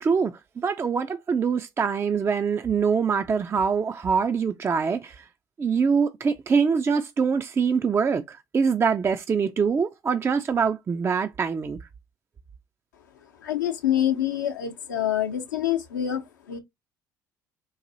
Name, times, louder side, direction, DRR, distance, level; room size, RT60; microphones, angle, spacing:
voice 1, 0.0-5.2 5.6-11.8, right 6 dB, 25° right, 0.3 m, -24 dB
voice 2, 13.4-16.2 16.5-16.6, left 11 dB, 80° left, 0.7 m, -26 dB
3.9 x 2.6 x 2.7 m
figure-of-eight pair, 55°, 10 cm